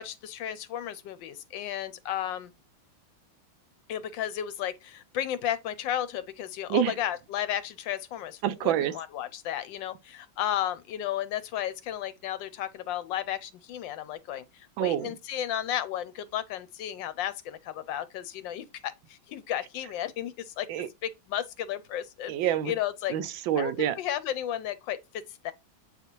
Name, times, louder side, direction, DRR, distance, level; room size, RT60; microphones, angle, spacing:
voice 1, 0.0-2.5 3.9-20.7 21.0-22.3 22.6-23.2 23.5-25.5, left 11 dB, 75° left, 1.2 m, -33 dB
voice 2, 8.4-8.9 14.8-15.1 20.7-20.9 22.3-22.7 23.1-24.0, right 12 dB, 75° right, 1.3 m, -27 dB
8.0 x 4.1 x 3.0 m
omnidirectional pair, 2.2 m